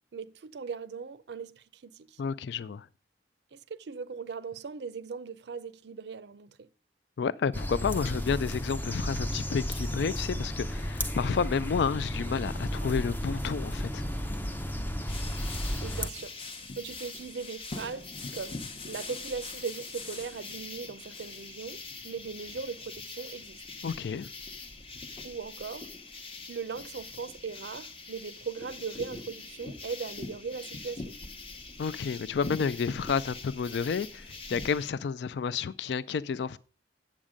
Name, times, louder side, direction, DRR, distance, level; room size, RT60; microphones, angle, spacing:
voice 1, 0.1-2.2 3.5-6.7 15.8-23.6 25.2-25.9 26.5-31.2, right 5 dB, 65° right, 0.5 m, -39 dB
voice 2, 2.2-2.9 7.2-14.1 23.8-24.3 31.8-36.6, left 6 dB, 70° left, 0.4 m, -30 dB
sound 1, 7.5-16.1, equal, 10° left, 0.5 m, -33 dB
sound 2, 15.1-34.9, left 3 dB, 30° left, 0.9 m, -43 dB
8.8 x 7.3 x 5.1 m
head